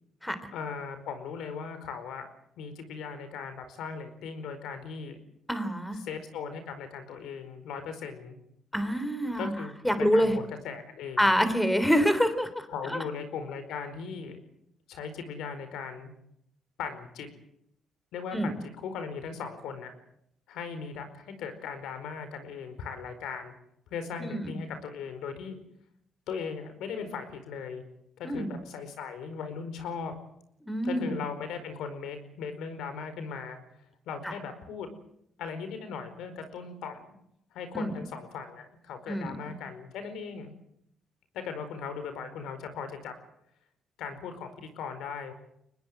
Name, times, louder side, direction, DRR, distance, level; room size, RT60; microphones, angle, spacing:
voice 1, 0.5-2.3 2.6-5.2 6.0-8.4 9.4-11.3 12.7-14.4 14.9-16.1 16.8-17.3 18.1-18.6 18.8-19.9 20.5-23.5 23.9-25.6 26.3-27.8 28.2-30.1 30.8-33.6 34.1-34.9 35.4-37.0 37.5-40.5 41.3-43.1 44.0-45.3, left 6 dB, 85° left, 9 dB, 4.7 m, -38 dB
voice 2, 5.5-6.0 8.7-10.3 11.2-13.0 18.3-18.6 24.2-24.6 28.2-28.6 30.6-31.2 34.2-34.3 37.7-37.9 39.1-39.5, equal, 5° left, 10 dB, 3.4 m, -27 dB
24.0 x 20.0 x 8.0 m, 0.75 s
cardioid pair, 90°, 0 cm